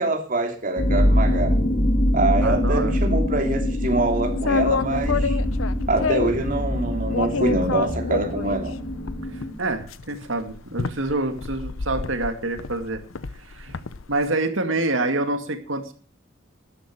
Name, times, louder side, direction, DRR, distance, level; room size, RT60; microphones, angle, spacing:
voice 1, 0.0-1.5 2.1-5.4 5.9-8.8, right 2 dB, 40° right, 2.9 m, -25 dB
sound 1, 0.8-9.5, equal, 45° left, 2.7 m, -24 dB
voice 2, 2.4-3.0 9.6-13.0 13.5-13.7 14.1-15.9, right 2 dB, 75° right, 2.3 m, -26 dB
sound 2, 4.3-6.4 7.1-14.2, left 4 dB, 85° left, 0.8 m, -28 dB
12.5 x 10.5 x 6.2 m
head